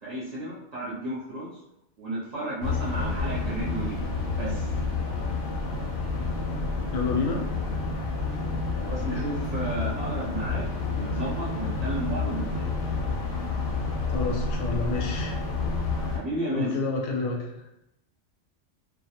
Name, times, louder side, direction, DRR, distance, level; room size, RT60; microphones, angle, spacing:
voice 1, 0.0-1.5 2.0-4.1 4.4-4.7 8.8-12.7 16.1-16.7, right 1 dB, 45° right, -8 dB, 0.5 m, -33 dB
sound 1, 2.6-16.2, left 3 dB, 60° left, 0.6 m, -29 dB
voice 2, 6.9-7.4 14.1-15.4 16.5-17.8, left 3 dB, 80° left, 1 dB, 0.9 m, -29 dB
2.2 x 2.1 x 2.8 m, 0.85 s
omnidirectional pair, 1.2 m